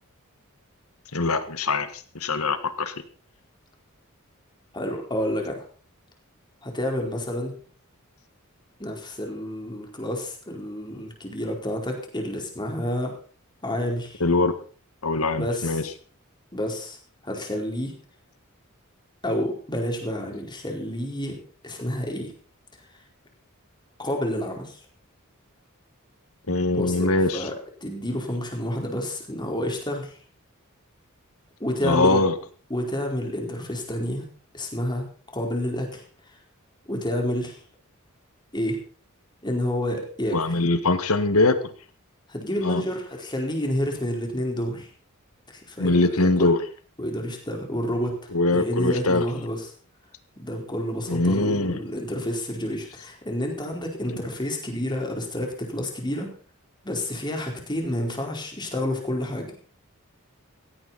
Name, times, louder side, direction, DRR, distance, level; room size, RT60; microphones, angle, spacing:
voice 1, 1.1-2.9 14.2-14.5 15.0-15.8 26.5-27.5 31.8-32.3 40.3-41.7 42.6-42.8 45.8-46.6 48.3-49.2 51.1-51.8 54.1-54.2, left 2 dB, 85° left, 11 dB, 1.8 m, -22 dB
voice 2, 4.7-5.6 6.6-7.6 8.8-13.1 13.6-14.2 15.3-15.8 16.5-17.0 17.2-17.9 19.2-21.4 21.6-22.3 24.0-24.8 26.7-27.5 27.8-30.2 31.6-32.2 32.7-34.2 34.5-35.1 35.3-36.0 36.8-37.6 38.5-38.8 39.4-40.4 42.3-44.9 45.5-46.5 47.0-49.7 50.4-56.3 56.8-59.5, left 1 dB, 20° left, 2 dB, 4.5 m, -29 dB
17.0 x 15.0 x 4.2 m, 0.40 s
head